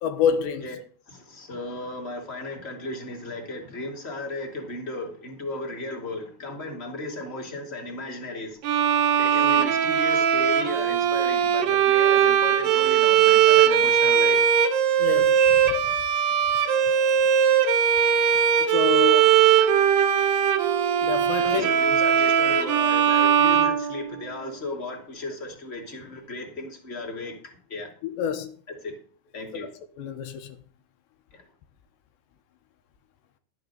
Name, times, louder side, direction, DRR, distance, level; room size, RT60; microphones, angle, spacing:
voice 1, 0.0-0.6 15.0-15.7 18.7-19.5 21.0-21.7 28.0-28.5 29.5-29.7 30.0-30.6, left 8 dB, 75° left, 3.0 m, -27 dB
voice 2, 1.1-8.7 9.2-14.4 21.4-27.4 27.7-27.9 28.8-29.0 29.3-29.7 31.3-31.4, left 2 dB, 20° left, 2.0 m, -35 dB
Bowed string instrument, 8.6-24.5, right 9 dB, 70° right, 2.3 m, -20 dB
12.0 x 7.7 x 6.6 m
omnidirectional pair, 5.4 m